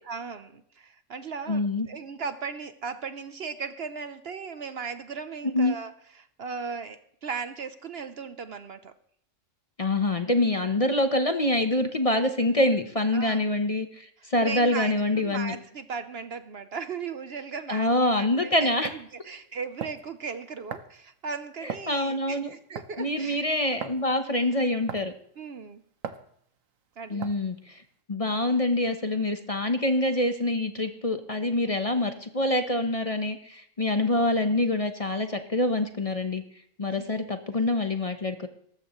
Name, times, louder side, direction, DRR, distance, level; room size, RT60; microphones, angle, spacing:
voice 1, 0.1-8.9 13.1-13.4 14.2-17.9 18.2-23.4 24.2-24.6 25.4-25.8 27.0-27.3 31.7-31.9 37.0-37.1, right 5 dB, 55° right, 11 dB, 0.9 m, -37 dB
voice 2, 1.5-1.9 5.5-5.7 9.8-15.6 17.7-18.9 21.6-22.5 23.0-25.1 27.1-27.7 28.1-36.4 36.8-38.5, left 1 dB, 30° left, 7 dB, 0.9 m, -25 dB
sound 1, 18.1-18.2 18.8-19.1 19.8-20.1 20.7-21.0 21.7-22.0 22.8-23.0 23.8-24.0 24.9-25.2 26.0-26.3 27.2-27.5, right 7 dB, 80° right, 1.3 m, -37 dB
18.5 x 14.5 x 3.1 m, 0.66 s
omnidirectional pair, 1.4 m